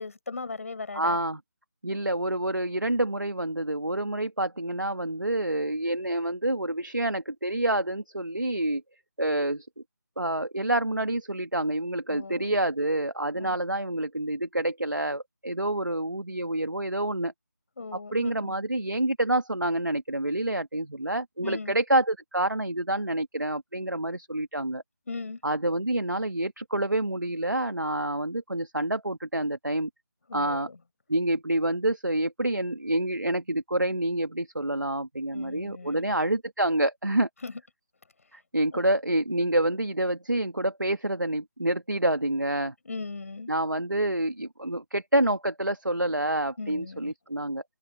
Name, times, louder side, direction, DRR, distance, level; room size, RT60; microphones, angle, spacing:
voice 1, 0.0-1.2 12.1-12.5 13.4-13.5 17.8-18.5 21.4-21.7 25.1-25.4 30.3-30.8 35.3-36.1 37.4-37.5 38.7-38.8 42.8-43.5 46.6-47.1, left 4 dB, 50° left, 4.9 m, -38 dB
voice 2, 0.9-1.4 1.8-8.8 9.2-9.7 10.2-17.3 17.9-24.8 25.4-29.9 30.3-30.7 31.1-37.3 38.3-42.7 43.5-47.6, right 1 dB, 85° right, 1.9 m, -27 dB
figure-of-eight pair, 155°, 10 cm